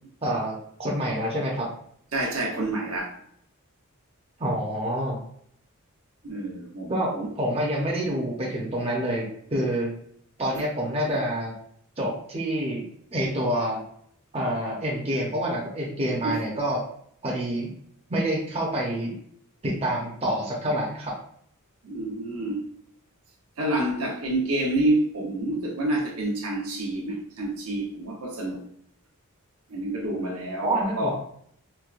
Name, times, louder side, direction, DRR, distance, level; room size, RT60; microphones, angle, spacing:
voice 1, 0.2-1.7 4.4-5.2 6.9-7.1 7.4-9.2 9.5-9.9 10.4-11.5 12.0-12.8 13.1-13.8 14.3-16.8 17.2-17.7 18.1-19.1 19.6-21.1 30.6-31.2, right 1 dB, 25° right, 0.7 m, -27 dB
voice 2, 2.1-3.2 6.2-7.3 16.2-16.4 21.8-22.6 23.6-28.6 29.7-31.2, right 1 dB, 70° right, 1.0 m, -28 dB
4.4 x 2.2 x 2.4 m
head